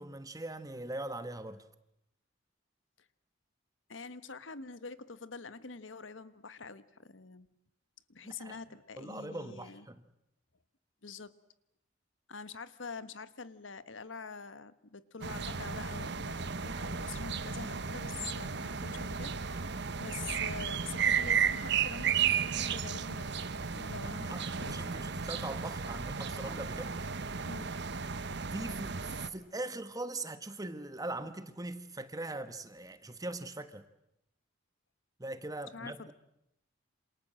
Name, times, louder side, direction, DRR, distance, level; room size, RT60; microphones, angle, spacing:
voice 1, 0.0-1.6 8.2-8.6 9.0-10.0 24.0-26.9 28.5-33.9 35.2-36.1, right 2 dB, 20° right, 1.3 m, -41 dB
voice 2, 3.9-7.5 8.1-9.9 11.0-11.3 12.3-25.0 27.4-27.8 35.7-36.1, left 4 dB, 75° left, 1.4 m, -46 dB
sound 1, 15.2-29.3, right 6 dB, 60° right, 1.1 m, -34 dB
28.0 x 27.0 x 7.7 m
head